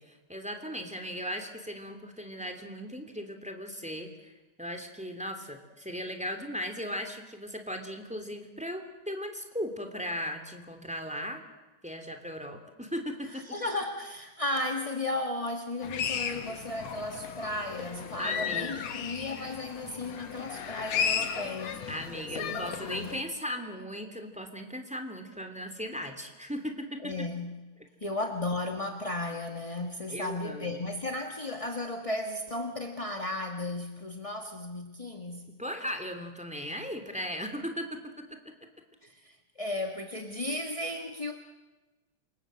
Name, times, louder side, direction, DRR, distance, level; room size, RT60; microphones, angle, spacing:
voice 1, 0.0-4.3 4.6-11.4 11.8-13.4 18.2-18.8 21.9-27.1 30.1-30.8 35.6-38.4, equal, ahead, 5 dB, 2.7 m, -37 dB
voice 2, 13.3-21.8 22.4-23.2 27.0-27.6 28.0-35.5 39.0-41.3, left 2 dB, 20° left, 3 dB, 0.8 m, -35 dB
sound 1, 15.8-23.2, left 7 dB, 65° left, 2.6 m, -35 dB
28.0 x 25.5 x 7.8 m, 1.1 s
omnidirectional pair, 3.4 m